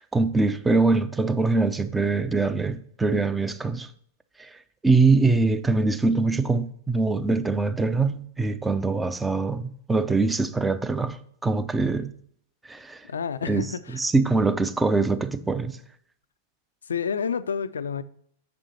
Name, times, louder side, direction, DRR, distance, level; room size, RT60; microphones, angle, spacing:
voice 1, 0.0-3.9 4.4-4.5 4.8-12.2 12.7-13.0 13.5-13.6 13.9-15.8, right 3 dB, 10° right, 0.6 m, -23 dB
voice 2, 13.1-14.0 16.8-18.0, left 6 dB, 75° left, 0.4 m, -29 dB
7.3 x 5.3 x 4.2 m
figure-of-eight pair, 95°, 0 cm